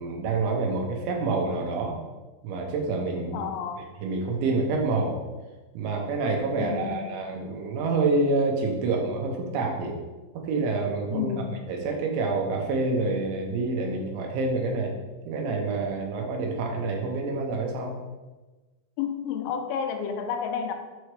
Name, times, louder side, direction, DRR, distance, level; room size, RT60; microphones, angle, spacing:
voice 1, 0.0-2.0 2.4-3.5 4.0-5.2 5.7-10.0 10.3-15.0 15.3-17.9, right 3 dB, 85° right, 1 dB, 3.3 m, -27 dB
voice 2, 3.3-3.9 6.6-7.1 11.1-11.6 19.0-20.7, left 7 dB, 90° left, 5 dB, 3.0 m, -31 dB
7.6 x 3.2 x 4.6 m, 1.2 s
omnidirectional pair, 5.3 m